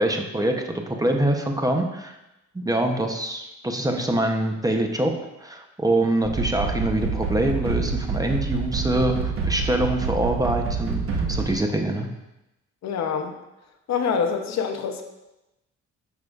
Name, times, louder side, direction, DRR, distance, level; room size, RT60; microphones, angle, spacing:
voice 1, 0.0-2.2 2.5-5.1 5.4-12.1, right 1 dB, 10° right, 3 dB, 0.7 m, -24 dB
sound 1, 6.2-11.6, right 5 dB, 45° right, 1.0 m, -27 dB
voice 2, 12.8-13.4 13.9-15.0, left 6 dB, 60° left, 6 dB, 0.8 m, -25 dB
7.5 x 6.1 x 2.4 m, 0.95 s
cardioid pair, 90°, 30 cm